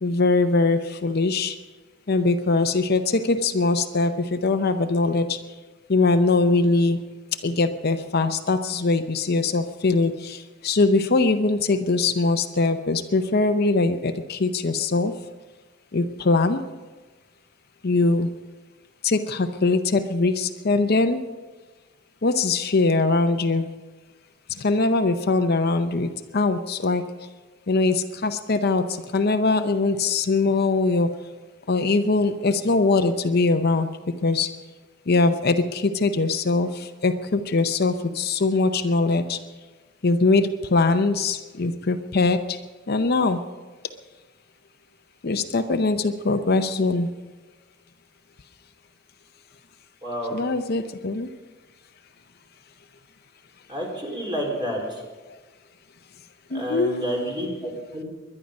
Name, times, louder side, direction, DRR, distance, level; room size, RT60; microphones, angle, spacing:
voice 1, 0.0-1.6 2.1-5.4 5.9-7.0 7.4-15.1 15.9-16.6 17.8-18.3 19.0-21.2 22.2-23.7 24.5-27.0 27.7-31.1 31.7-33.9 34.2-34.5 35.1-39.4 40.0-42.6 42.9-43.4 45.2-47.1 50.3-51.3 55.3-55.4 56.5-57.0, left 3 dB, 55° left, 8 dB, 0.7 m, -22 dB
voice 2, 50.0-50.4 53.7-55.0 56.5-58.0, equal, 25° right, -1 dB, 4.1 m, -29 dB
21.5 x 11.0 x 5.3 m, 1.3 s
head